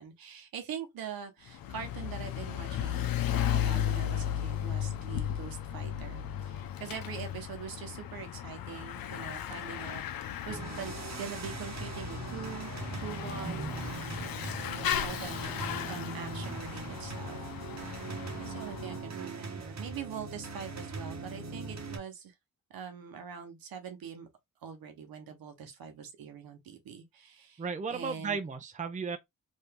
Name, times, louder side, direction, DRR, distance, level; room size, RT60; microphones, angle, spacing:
voice 1, 0.0-12.7 13.0-14.3 14.7-17.4 18.4-22.3 22.7-24.3 24.6-28.4, right 7 dB, 80° right, 0.9 m, -43 dB
Bicycle / Mechanisms, 1.5-19.1, left 10 dB, 80° left, 0.6 m, -35 dB
sound 1, 10.5-22.0, right 4 dB, 50° right, 1.0 m, -40 dB
voice 2, 27.6-29.2, right 5 dB, 20° right, 0.6 m, -35 dB
2.8 x 2.7 x 3.4 m
cardioid pair, 65°, 35 cm